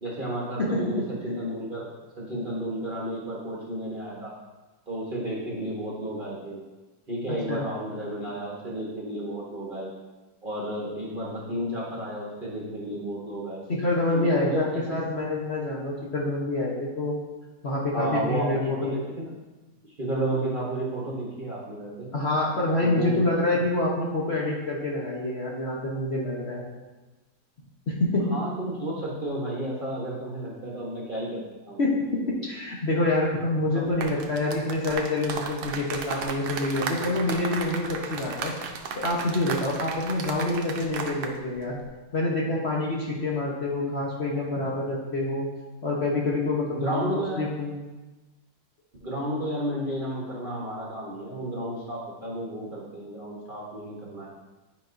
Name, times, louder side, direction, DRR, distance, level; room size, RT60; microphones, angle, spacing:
voice 1, 0.0-4.3 4.9-6.6 7.1-9.9 10.4-13.6 14.1-14.8 17.9-19.3 20.0-22.1 22.8-23.2 28.3-31.8 33.7-33.8 46.7-47.5 49.0-54.3, right 1 dB, 35° right, -5 dB, 1.1 m, -32 dB
voice 2, 0.6-1.0 7.3-7.7 13.7-17.2 17.6-19.0 22.1-26.7 27.9-28.4 31.8-38.5 38.9-41.8 42.1-45.5 45.8-47.8, left 2 dB, 45° left, -4 dB, 1.1 m, -27 dB
sound 1, 33.9-41.4 41.6-41.9, right 5 dB, 75° right, 1.3 m, -34 dB
10.0 x 5.2 x 2.6 m, 1.1 s
omnidirectional pair, 1.9 m